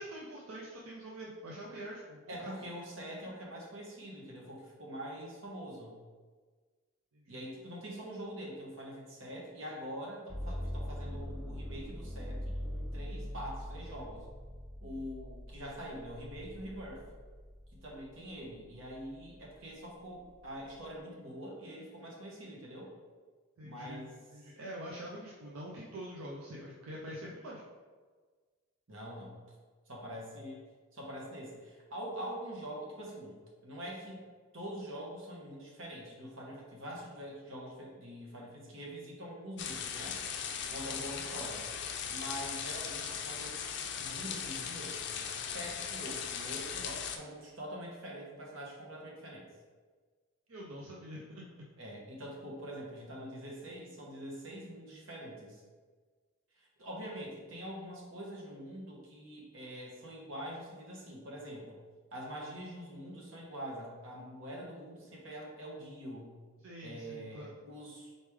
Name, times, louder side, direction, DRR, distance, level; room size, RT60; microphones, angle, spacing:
voice 1, 0.0-2.5 7.1-7.4 23.6-27.6 40.9-41.2 50.5-51.4 66.6-67.5, equal, 90° right, -4 dB, 0.6 m, -45 dB
voice 2, 2.3-6.0 7.3-14.3 14.8-17.0 17.7-22.9 23.6-24.1 28.9-29.3 29.9-30.6 30.9-34.2 34.5-40.2 40.7-41.7 42.1-43.6 44.0-49.5 51.8-55.6 56.6-61.8 62.1-66.3 66.8-68.2, equal, 70° right, -2 dB, 1.1 m, -44 dB
sound 1, 10.3-18.1 18.6-19.4, equal, 5° right, 0.6 m, -42 dB
sound 2, 39.6-47.2, left 7 dB, 55° left, 0.4 m, -38 dB
4.1 x 3.2 x 3.5 m, 1.4 s
head